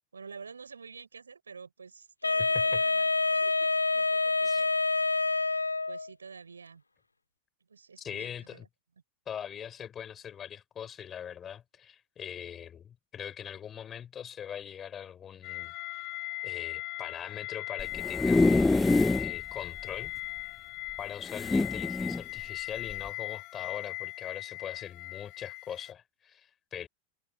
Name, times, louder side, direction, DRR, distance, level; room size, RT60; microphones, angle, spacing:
voice 1, 0.1-4.7 5.9-6.8 7.7-8.7, right 5 dB, 75° right, 5.7 m, -48 dB
Wind instrument woodwind instrument, 2.2-6.1, left 3 dB, 80° left, 0.5 m, -27 dB
voice 2, 2.4-2.8 4.4-4.6 8.0-8.6 9.3-16.0 16.4-18.9 19.2-20.1 21.0-26.9, left 9 dB, 25° left, 4.9 m, -42 dB
sound 1, 15.4-25.9, left 25 dB, 40° left, 2.1 m, -39 dB
sound 2, 17.8-19.3 19.8-19.9 20.1-20.2 21.3-22.2 22.9-23.1, left 3 dB, 10° left, 0.4 m, -25 dB
figure-of-eight pair, 90°, 0 cm